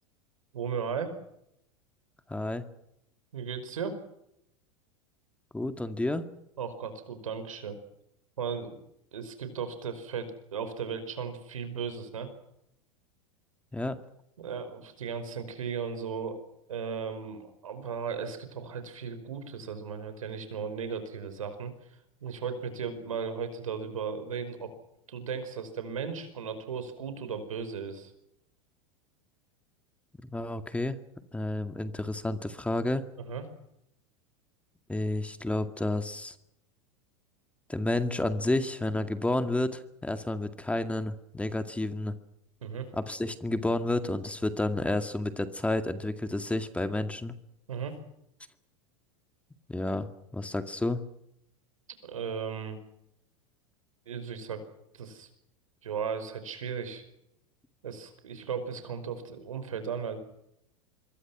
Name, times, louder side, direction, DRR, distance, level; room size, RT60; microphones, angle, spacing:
voice 1, 0.5-1.1 3.3-4.0 6.6-7.8 8.4-8.8 9.1-12.3 14.4-16.4 16.7-21.7 22.2-24.7 25.1-28.1 33.2-33.4 42.6-42.9 47.7-48.0 52.0-52.8 54.0-54.6 54.9-55.3 55.8-57.0 57.8-60.2, right 6 dB, 85° right, 10 dB, 5.0 m, -36 dB
voice 2, 2.3-2.7 5.5-6.3 13.7-14.0 30.2-31.0 31.3-33.1 34.9-36.4 37.7-42.1 42.9-47.3 49.7-50.1 50.3-51.0, left 2 dB, 5° left, 9 dB, 2.1 m, -30 dB
26.0 x 23.0 x 6.1 m, 0.79 s
hypercardioid pair, 95°, 17 cm